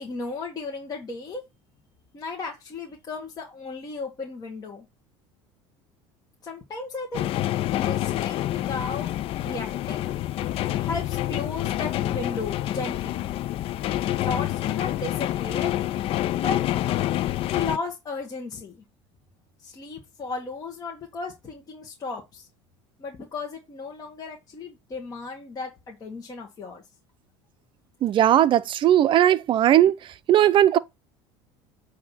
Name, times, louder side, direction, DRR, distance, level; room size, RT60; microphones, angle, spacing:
voice 1, 0.0-1.4 2.1-4.9 6.4-7.3 7.7-10.2 10.8-13.3 14.2-16.1 16.4-16.6 17.4-18.8 19.6-22.5 23.0-26.8, left 4 dB, 30° left, 1.5 m, -35 dB
sound 1, 7.1-17.8, left 13 dB, 50° left, 0.4 m, -27 dB
voice 2, 28.0-29.9 30.3-30.8, right 11 dB, 40° right, 0.6 m, -18 dB
8.5 x 2.9 x 5.8 m
supercardioid pair, 105°, 13 cm